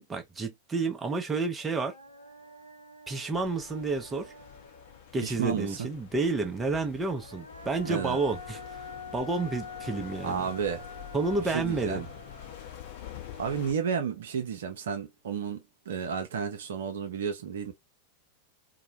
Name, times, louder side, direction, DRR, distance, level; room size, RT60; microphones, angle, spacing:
voice 1, 0.0-1.9 3.1-4.3 5.1-10.5 11.1-12.1, right 3 dB, 15° right, 0.7 m, -30 dB
Human voice, 1.2-1.3 1.6-5.3 6.9-14.2, left 2 dB, 90° left, 0.5 m, -47 dB
sound 1, 3.3-13.7, left 11 dB, 50° left, 0.7 m, -47 dB
voice 2, 5.2-5.9 7.9-8.2 10.2-10.9 11.5-12.1 13.4-17.7, right 7 dB, 60° right, 0.6 m, -32 dB
2.8 x 2.1 x 2.6 m
figure-of-eight pair, 90°, 0 cm